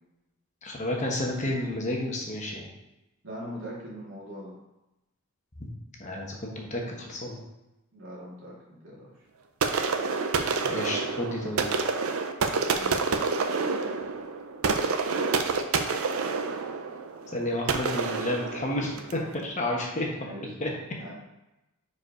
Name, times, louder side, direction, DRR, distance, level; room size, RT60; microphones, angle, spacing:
voice 1, 0.6-2.7 5.6-5.7 6.0-7.4 10.6-11.6 17.3-20.1 20.6-20.7, left 1 dB, 35° left, -1 dB, 1.1 m, -31 dB
voice 2, 3.2-4.5 7.9-9.1 12.7-13.1 20.1-20.7 21.0-21.1, equal, 65° right, -6 dB, 2.4 m, -41 dB
sound 1, 9.6-19.3, right 4 dB, 85° right, 0.6 m, -28 dB
4.8 x 4.8 x 4.8 m, 0.95 s
head